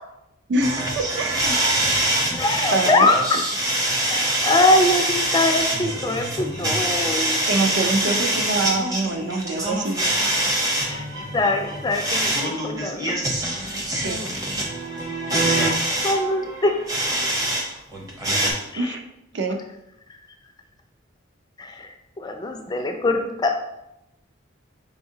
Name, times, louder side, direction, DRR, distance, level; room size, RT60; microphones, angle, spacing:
voice 1, 0.5-1.6 2.7-3.1 7.4-10.0 14.0-14.3 18.8-19.0 19.3-19.6, right 2 dB, 60° right, 5 dB, 0.5 m, -25 dB
sound 1, 0.6-17.6 17.9-18.5, right 1 dB, 20° right, 0.6 m, -24 dB
voice 2, 2.4-3.2 4.0-7.4 8.1-8.2 10.9-11.1 11.3-13.2 15.4-15.7 16.0-16.7 18.7-19.0 21.6-21.9 22.2-23.6, left 2 dB, 20° left, 5 dB, 0.3 m, -23 dB
4.7 x 3.5 x 2.7 m, 0.87 s
head